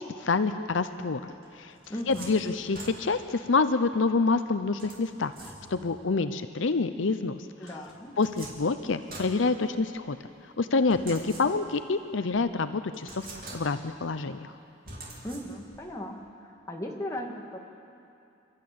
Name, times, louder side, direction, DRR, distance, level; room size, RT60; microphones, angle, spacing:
voice 1, 0.0-1.7 2.1-5.3 5.7-7.7 8.2-10.2 10.6-13.3 13.5-14.5, left 4 dB, 75° left, 10 dB, 0.7 m, -27 dB
sound 1, 1.4-3.4 4.8-6.0 7.6-10.1 10.9-11.9 12.3-12.4 12.9-14.0 14.8-15.9, right 2 dB, 45° right, 3.7 m, -45 dB
voice 2, 1.9-2.4 7.6-8.1 15.2-16.2 16.7-17.6, left 1 dB, 15° left, -1 dB, 2.0 m, -37 dB
29.0 x 13.0 x 8.7 m, 2.6 s
head